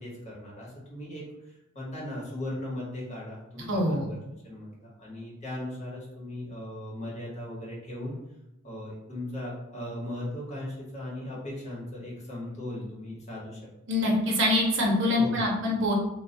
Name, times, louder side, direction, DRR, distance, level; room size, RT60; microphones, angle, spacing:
voice 1, 0.0-4.1 4.4-8.1 8.6-13.6 15.2-15.4, left 1 dB, 35° left, -5 dB, 1.0 m, -38 dB
voice 2, 3.7-4.1 13.9-15.9, left 1 dB, 60° right, -2 dB, 0.7 m, -24 dB
2.2 x 2.1 x 3.7 m, 0.95 s
head